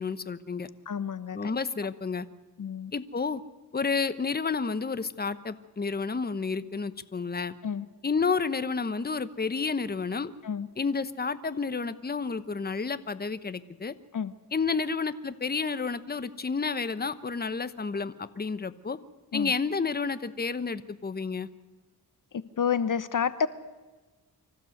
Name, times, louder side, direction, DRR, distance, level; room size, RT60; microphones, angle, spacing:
voice 1, 0.0-0.7 1.3-2.3 2.9-3.4 3.7-7.5 8.0-10.3 10.8-13.9 14.5-19.0 19.3-21.5, left 4 dB, 25° left, 14 dB, 1.0 m, -30 dB
voice 2, 0.9-1.6 2.6-2.9 7.6-7.9 10.4-10.7 14.1-14.3 19.3-19.5 22.3-23.5, left 7 dB, 55° left, 15 dB, 0.9 m, -29 dB
25.0 x 15.5 x 7.9 m, 1.2 s
cardioid pair, 80°, 38 cm